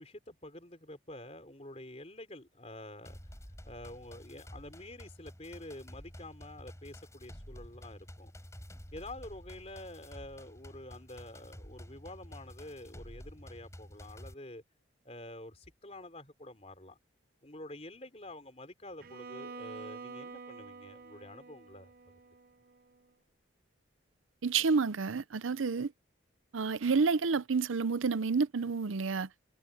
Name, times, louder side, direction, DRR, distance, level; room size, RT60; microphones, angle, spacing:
voice 1, 0.0-3.2 3.6-8.3 8.9-14.6 15.0-17.0 17.4-21.9, left 1 dB, 30° left, 4.4 m, -48 dB
sound 1, 3.1-14.3, equal, 15° left, 7.5 m, -50 dB
Bowed string instrument, 19.0-23.0, right 4 dB, 50° right, 0.6 m, -48 dB
voice 2, 24.4-25.9 26.5-29.3, right 4 dB, 85° right, 0.6 m, -29 dB
head